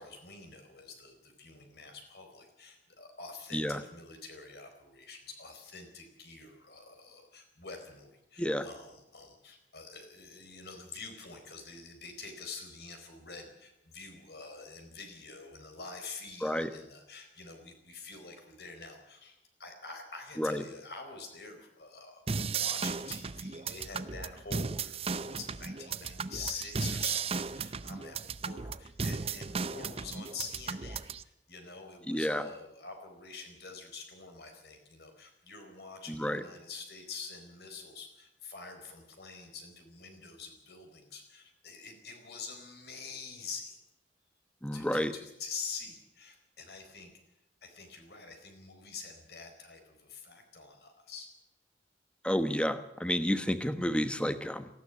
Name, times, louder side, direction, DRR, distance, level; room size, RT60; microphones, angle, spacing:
voice 1, 0.0-43.8 44.7-47.1 47.6-51.3, left 4 dB, 65° left, 5 dB, 4.4 m, -46 dB
sound 1, 22.3-31.2, right 5 dB, 35° right, 0.6 m, -35 dB
voice 2, 32.1-32.4 36.2-36.4 44.6-45.1 52.2-54.7, equal, 5° left, 10 dB, 1.1 m, -30 dB
19.0 x 15.0 x 9.8 m, 0.87 s
head